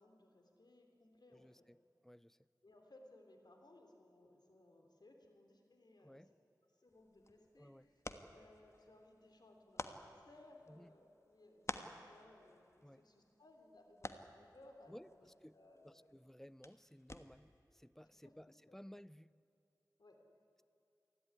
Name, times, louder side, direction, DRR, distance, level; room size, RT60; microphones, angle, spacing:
voice 1, 0.0-1.6 2.6-6.2 6.7-8.0 8.3-16.2 18.0-18.3 18.7-18.8 20.0-20.2, left 1 dB, 70° left, 3 dB, 3.3 m, -63 dB
voice 2, 1.3-1.8 2.0-2.5 6.0-6.3 7.6-7.9 10.7-10.9 12.8-13.0 14.9-15.6 15.8-19.3, equal, 5° left, 19 dB, 0.5 m, -57 dB
sound 1, 6.9-17.6, left 2 dB, 40° left, 1.4 m, -53 dB
28.0 x 11.5 x 9.7 m, 2.9 s
wide cardioid pair, 45°, 7 cm